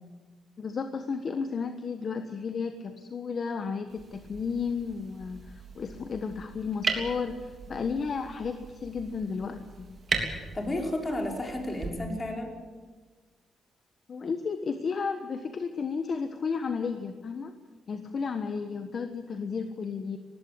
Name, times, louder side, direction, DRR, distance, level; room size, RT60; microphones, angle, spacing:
voice 1, 0.6-9.9 14.1-17.5 17.9-20.2, left 5 dB, 50° left, 8 dB, 1.3 m, -33 dB
sound 1, 3.9-11.9, right 4 dB, 40° right, 3.5 m, -38 dB
voice 2, 10.5-12.5, left 1 dB, 25° left, 2 dB, 4.8 m, -32 dB
20.0 x 15.5 x 8.5 m, 1.4 s
cardioid pair, 95°, 0 cm